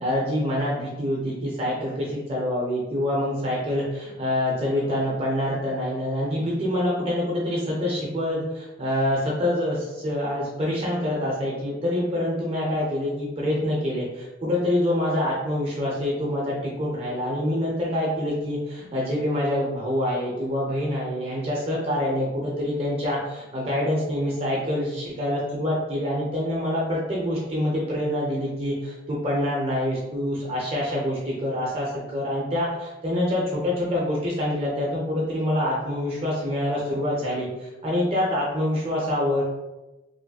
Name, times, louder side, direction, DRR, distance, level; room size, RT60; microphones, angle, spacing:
voice 1, 0.0-39.4, left 1 dB, 35° right, -4 dB, 0.5 m, -26 dB
3.1 x 2.5 x 2.2 m, 1.0 s
head